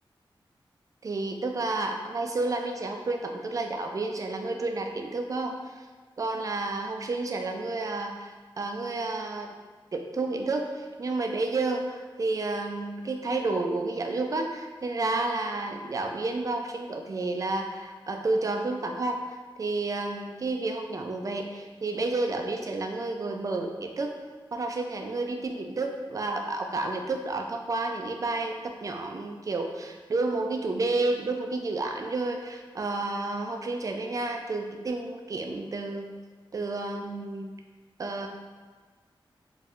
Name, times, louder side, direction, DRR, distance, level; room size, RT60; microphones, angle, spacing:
voice 1, 1.0-5.7 6.2-9.5 9.9-19.2 19.6-24.2 24.5-36.1 36.5-37.5 38.0-38.3, right 2 dB, 40° right, 3 dB, 0.4 m, -30 dB
4.2 x 2.3 x 3.6 m, 1.4 s
wide cardioid pair, 100°, 9 cm